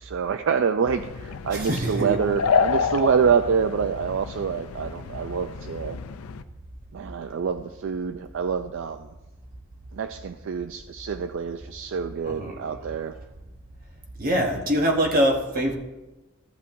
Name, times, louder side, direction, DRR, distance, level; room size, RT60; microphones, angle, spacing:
voice 1, 0.0-6.0 6.9-9.1 9.9-13.1, right 6 dB, 60° right, 9 dB, 0.4 m, -26 dB
sound 1, 0.9-6.4, left 6 dB, 85° left, 0.5 m, -29 dB
voice 2, 1.5-2.2 12.2-12.8 14.2-15.7, equal, 40° right, 1 dB, 1.0 m, -24 dB
14.0 x 8.3 x 2.6 m, 1.1 s
head